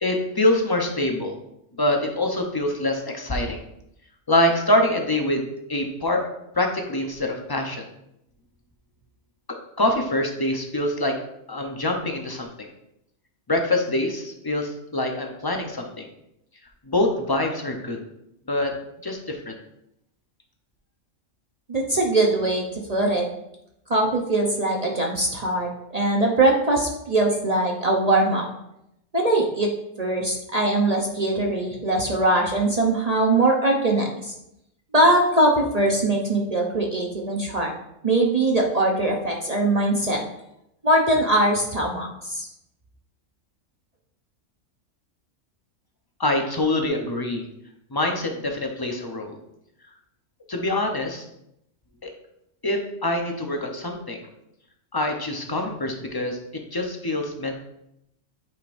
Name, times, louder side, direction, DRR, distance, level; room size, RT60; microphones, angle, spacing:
voice 1, 0.0-1.4 1.8-3.6 4.3-6.2 6.5-7.9 9.8-11.2 11.5-12.7 13.5-16.1 16.9-18.0 18.5-18.7 19.0-19.6 46.2-47.5 47.9-49.4 50.5-51.2 52.0-52.1 52.6-54.3 54.9-57.5, left 1 dB, 20° left, 3 dB, 0.7 m, -25 dB
voice 2, 21.7-22.6 22.9-23.3 23.9-28.4 29.1-29.7 30.0-34.3 34.9-37.7 38.0-40.2 40.8-42.5, right 2 dB, 35° right, -1 dB, 0.8 m, -21 dB
9.3 x 5.2 x 2.6 m, 0.81 s
omnidirectional pair, 1.3 m